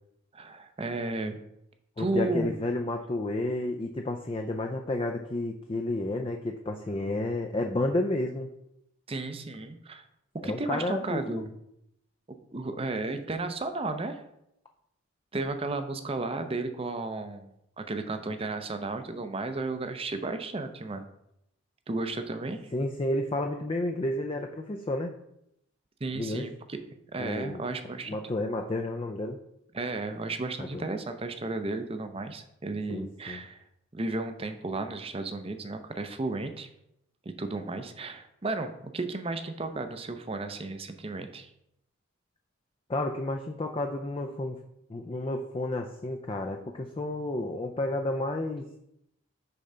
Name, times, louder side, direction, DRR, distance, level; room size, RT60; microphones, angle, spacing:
voice 1, 0.3-1.4 2.0-2.5 9.1-10.0 10.4-11.5 12.3-14.2 15.3-17.5 17.8-21.1 21.9-22.6 26.0-26.8 27.1-28.2 29.7-33.6 33.9-36.7 37.4-41.5, right 3 dB, 25° right, 8 dB, 0.6 m, -33 dB
voice 2, 2.0-8.5 10.4-11.4 22.7-25.1 26.1-26.5 27.2-27.7 28.1-29.4 30.6-30.9 32.9-33.4 42.9-44.6 44.9-48.7, left 2 dB, 25° left, 3 dB, 0.4 m, -31 dB
6.8 x 3.7 x 5.5 m, 0.80 s
head